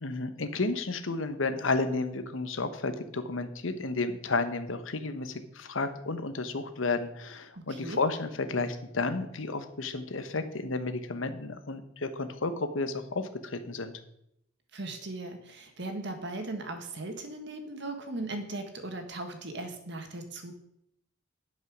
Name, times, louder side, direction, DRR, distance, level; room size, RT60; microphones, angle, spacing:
voice 1, 0.0-13.9, left 3 dB, 80° left, 9 dB, 1.0 m, -32 dB
voice 2, 7.5-8.0 14.7-20.5, right 2 dB, 60° right, 6 dB, 1.6 m, -38 dB
11.5 x 5.5 x 6.2 m, 0.78 s
head